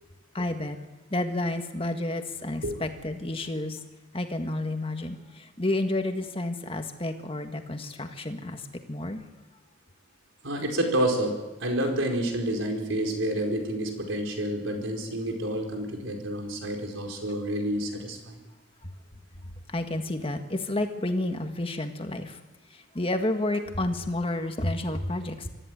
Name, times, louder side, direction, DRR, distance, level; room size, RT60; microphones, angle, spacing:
voice 1, 0.3-0.8 1.1-3.8 4.1-9.2 19.7-22.4 22.7-25.5, left 1 dB, 30° left, 6 dB, 1.7 m, -30 dB
voice 2, 10.4-18.4, right 1 dB, 90° right, 3 dB, 4.6 m, -29 dB
24.0 x 14.0 x 9.4 m, 1.2 s
head